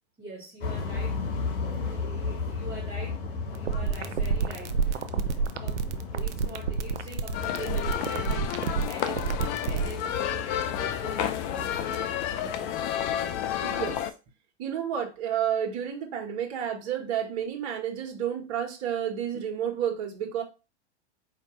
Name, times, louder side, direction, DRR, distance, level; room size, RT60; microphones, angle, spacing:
voice 1, 0.2-12.1 12.4-12.8, right 1 dB, 15° right, 1.8 m, -43 dB
sound 1, 0.6-13.9, left 4 dB, 65° left, 1.3 m, -36 dB
sound 2, 3.5-9.9, right 6 dB, 90° right, 0.6 m, -28 dB
sound 3, 7.3-14.1, left 10 dB, 40° left, 0.5 m, -31 dB
voice 2, 13.6-14.0 14.6-20.4, right 9 dB, 45° right, 1.3 m, -30 dB
4.5 x 2.9 x 3.1 m
hypercardioid pair, 110°, 34 cm